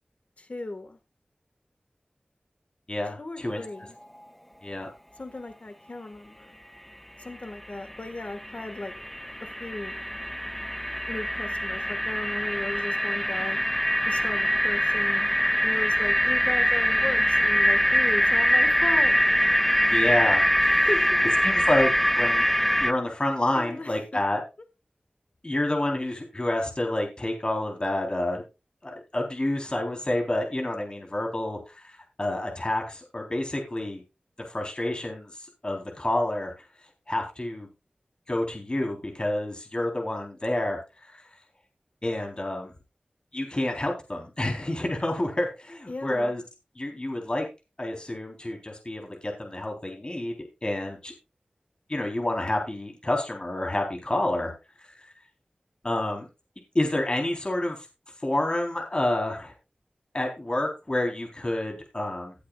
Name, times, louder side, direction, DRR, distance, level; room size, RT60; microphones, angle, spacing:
voice 1, 0.4-1.0 3.2-4.0 5.2-6.6 7.2-8.9 9.4-10.0 11.1-13.6 14.0-15.3 15.6-19.2 20.7-21.2 23.5-24.2 45.9-46.3, left 2 dB, 50° left, 8 dB, 1.6 m, -36 dB
voice 2, 2.9-3.6 4.6-4.9 19.8-20.9 21.4-21.9 22.2-22.5 22.8-24.4 25.4-28.4 28.8-34.0 34.5-35.3 35.6-36.5 37.1-37.7 38.3-40.8 41.1-41.2 42.0-42.7 43.3-46.4 46.8-47.5 47.8-51.1 51.9-54.5 55.8-56.3 56.7-57.8 58.2-59.5 60.1-62.3, left 1 dB, 35° left, 1 dB, 3.8 m, -28 dB
sound 1, 7.9-8.0 8.2-22.9, equal, 5° left, 0.6 m, -23 dB
18.0 x 8.3 x 2.4 m, 0.27 s
wide cardioid pair, 70°, 3 cm